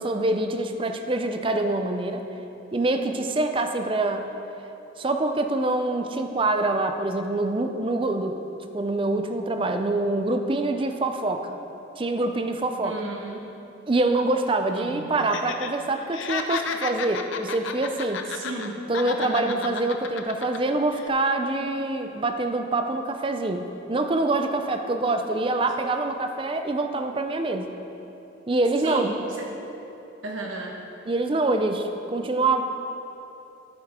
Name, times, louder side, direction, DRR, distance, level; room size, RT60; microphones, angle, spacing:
voice 1, 0.0-2.2 2.7-4.3 5.0-8.4 8.7-11.5 12.0-13.0 13.9-18.2 18.9-27.7 28.5-29.1 31.1-32.6, right 2 dB, 25° right, 6 dB, 0.4 m, -25 dB
voice 2, 12.8-13.5 14.7-15.1 18.3-18.8 19.2-19.6 28.8-29.5 30.2-30.8, right 2 dB, 85° right, 0 dB, 1.4 m, -34 dB
Laughter, 15.2-15.7 16.0-18.7 18.9-20.6 20.9-21.1, left 6 dB, 80° left, 0.6 m, -32 dB
12.0 x 9.1 x 3.6 m, 3.0 s
head